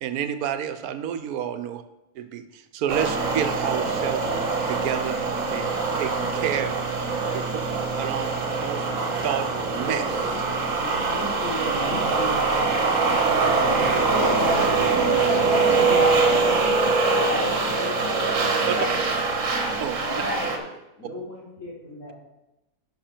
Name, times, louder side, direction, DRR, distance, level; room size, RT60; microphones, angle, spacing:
voice 1, 0.0-1.8 2.2-4.3 4.7-5.7 6.0-6.1 6.4-6.8 7.3-7.6 8.0-8.9 9.2-10.2 18.7-18.8 19.8-20.2, right 9 dB, 90° right, 11 dB, 1.1 m, -29 dB
sound 1, 2.9-20.6, right 4 dB, 60° right, 1.4 m, -23 dB
voice 2, 9.9-10.4 10.8-15.4 15.8-16.7 17.3-20.7 21.0-22.1, left 1 dB, 55° left, -5 dB, 3.3 m, -36 dB
voice 3, 14.1-19.1 20.1-20.5, left 2 dB, 80° left, -7 dB, 4.1 m, -30 dB
10.0 x 6.1 x 4.4 m, 0.94 s
omnidirectional pair, 1.5 m